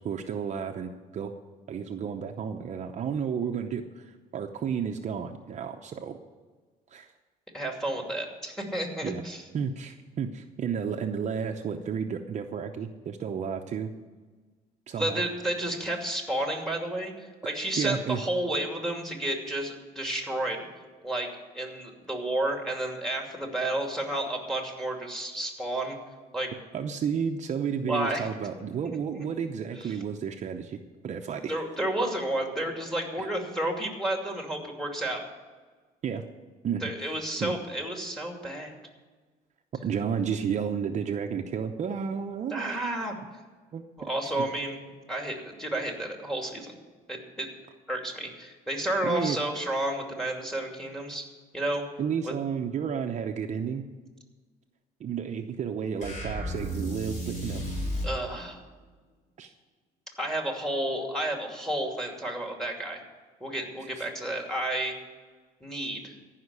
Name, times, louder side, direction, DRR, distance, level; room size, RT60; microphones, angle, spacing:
voice 1, 0.0-1.3 1.7-6.2 6.9-7.1 9.0-9.2 9.5-13.9 14.9-15.2 17.8-18.2 26.7-31.5 33.2-33.3 36.0-36.2 36.6-37.1 37.4-37.5 39.8-42.8 43.7-43.8 49.0-49.4 52.0-53.9 55.0-57.6 59.4-59.5 63.8-64.1, right 7 dB, 45° right, 4 dB, 0.8 m, -32 dB
voice 2, 7.5-9.4 14.9-20.7 21.0-21.3 21.5-26.0 26.3-26.5 27.9-28.3 29.2-29.3 29.7-30.0 31.5-35.2 36.8-38.8 42.5-43.1 44.0-44.8 45.1-46.8 47.1-47.5 47.9-51.2 51.5-51.8 52.2-52.3 58.0-58.6 60.2-63.0 63.4-65.0 65.6-66.1, right 1 dB, 5° left, 2 dB, 2.5 m, -31 dB
sound 1, 56.0-58.2, equal, 45° left, 4.2 m, -33 dB
14.5 x 5.8 x 9.5 m, 1.4 s
cardioid pair, 110°, 17 cm